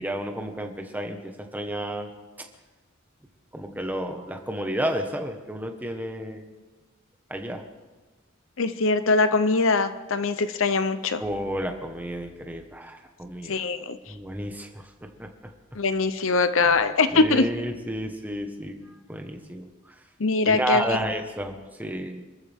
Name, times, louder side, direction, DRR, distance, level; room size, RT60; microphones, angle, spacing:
voice 1, 0.0-2.1 3.5-6.5 7.3-7.6 11.2-13.6 14.1-15.3 16.6-16.8 17.1-19.7 20.4-21.5 21.8-22.2, right 1 dB, 10° right, 4 dB, 1.5 m, -31 dB
voice 2, 8.6-11.2 13.5-14.0 15.8-17.5 20.2-21.0, left 3 dB, 70° left, 11 dB, 0.8 m, -22 dB
27.0 x 14.0 x 3.7 m, 1.3 s
head